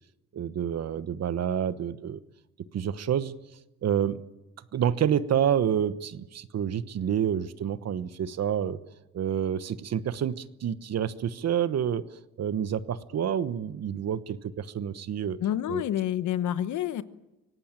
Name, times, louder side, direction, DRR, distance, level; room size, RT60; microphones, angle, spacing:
voice 1, 0.3-2.2 2.7-3.3 3.8-4.2 4.7-8.8 9.1-12.0 12.4-15.4 15.7-15.8, right 9 dB, 60° right, 14 dB, 1.2 m, -28 dB
voice 2, 15.4-17.0, left 11 dB, 75° left, 13 dB, 1.2 m, -28 dB
25.0 x 18.0 x 9.0 m, 0.98 s
cardioid pair, 90°, 30 cm